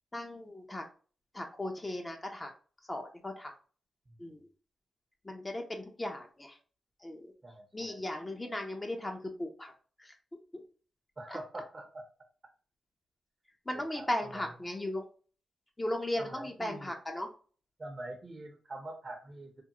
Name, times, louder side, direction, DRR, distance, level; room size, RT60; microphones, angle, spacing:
voice 1, 0.1-0.9 1.3-2.5 2.8-3.5 4.2-4.5 5.2-6.6 7.0-7.3 7.7-9.7 10.0-10.1 10.5-10.6 11.3-11.4 13.7-15.1 15.8-17.3, left 1 dB, 20° left, 2 dB, 0.7 m, -37 dB
voice 2, 7.4-8.0 11.2-12.0 13.7-14.5 16.2-17.0 17.8-19.6, right 2 dB, 40° right, 1 dB, 0.8 m, -45 dB
3.6 x 2.0 x 2.9 m, 0.39 s
cardioid pair, 65°, 0 cm